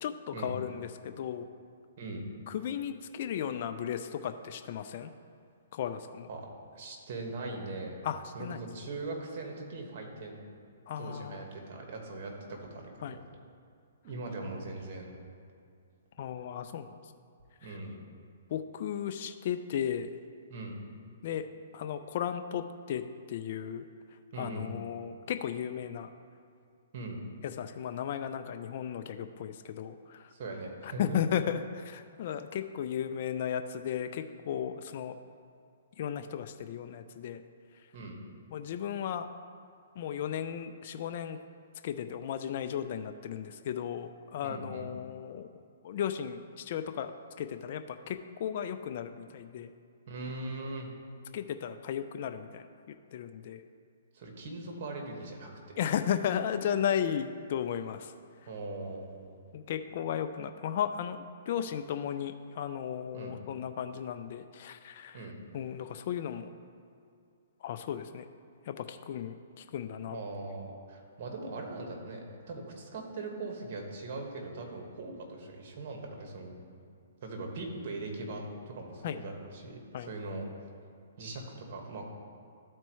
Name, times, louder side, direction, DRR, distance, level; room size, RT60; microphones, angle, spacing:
voice 1, 0.0-1.5 2.5-5.1 5.7-6.3 8.0-8.6 10.9-11.4 13.0-13.2 16.2-17.0 18.5-20.1 21.2-21.5 21.7-23.8 24.4-26.1 27.6-30.3 30.8-35.1 36.0-37.4 38.5-39.3 40.0-41.4 41.8-45.5 45.8-47.1 47.4-49.7 51.3-53.6 55.8-58.1 59.5-65.3 65.5-66.5 67.6-68.2 68.7-70.2 79.0-79.2 79.9-80.1, left 9 dB, 50° left, 8 dB, 0.4 m, -35 dB
voice 2, 6.7-8.0 8.3-10.4 11.0-13.2 14.0-15.1 17.6-18.0 20.5-20.8 24.3-24.7 26.9-27.2 30.3-31.2 37.9-38.2 44.4-44.9 50.1-50.9 54.1-55.8 58.5-59.2 63.1-63.4 65.1-65.4 70.1-76.5 77.2-80.5 81.2-82.0, right 2 dB, 50° right, 1 dB, 1.6 m, -40 dB
13.0 x 4.4 x 3.1 m, 2.4 s
hypercardioid pair, 145°, 0 cm